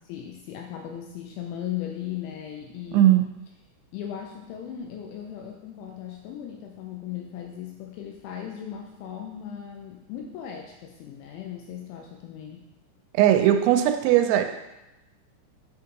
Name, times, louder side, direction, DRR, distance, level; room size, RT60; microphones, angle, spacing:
voice 1, 0.0-3.1 3.9-12.7, left 10 dB, 85° left, 1 dB, 2.7 m, -37 dB
voice 2, 2.9-3.3 13.1-14.4, right 12 dB, 90° right, 6 dB, 3.2 m, -19 dB
9.6 x 3.6 x 2.9 m, 0.94 s
omnidirectional pair, 5.7 m